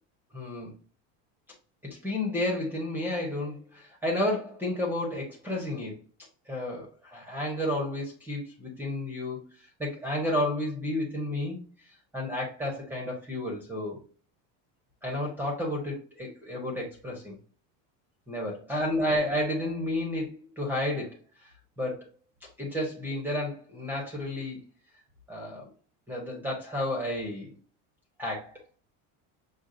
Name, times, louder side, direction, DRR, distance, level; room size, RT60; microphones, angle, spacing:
voice 1, 0.3-0.7 2.0-5.9 6.5-9.4 9.8-11.6 12.1-14.0 15.0-17.3 18.3-21.1 21.4-21.5 21.8-22.0 22.6-24.6 25.3-25.7 26.1-27.5 28.2-28.5, left 1 dB, 5° right, 1.1 m, -31 dB
6.4 x 2.4 x 2.5 m
cardioid pair, 155°, 39 cm